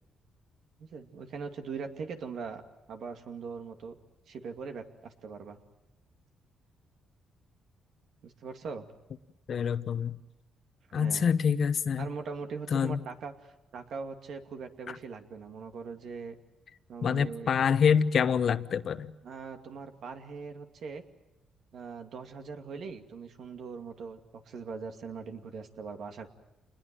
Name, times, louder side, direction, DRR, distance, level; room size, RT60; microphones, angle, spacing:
voice 1, 0.8-2.6 2.9-4.0 4.3-5.6 8.2-8.9 10.9-11.3 12.0-16.4 16.9-17.5 19.2-21.0 21.7-26.3, right 5 dB, 65° right, 5 dB, 2.4 m, -41 dB
voice 2, 9.5-10.2 10.9-12.1 12.7-13.0 17.0-19.1, left 7 dB, 55° left, 12 dB, 1.0 m, -26 dB
28.5 x 20.5 x 7.7 m, 0.92 s
cardioid pair, 90°, 0 cm